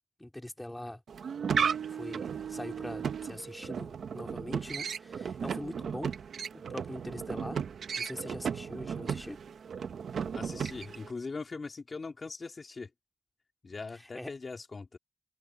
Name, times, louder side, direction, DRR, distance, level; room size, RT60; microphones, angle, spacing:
voice 1, 0.2-1.0 1.9-6.2 6.5-7.6 8.0-9.4 14.1-14.3, left 1 dB, 15° left, 3.1 m, -42 dB
sound 1, 1.1-11.1, right 7 dB, 80° right, 1.0 m, -35 dB
voice 2, 10.3-12.9 13.6-15.0, left 4 dB, 55° left, 2.4 m, -41 dB
cardioid pair, 45°, 0 cm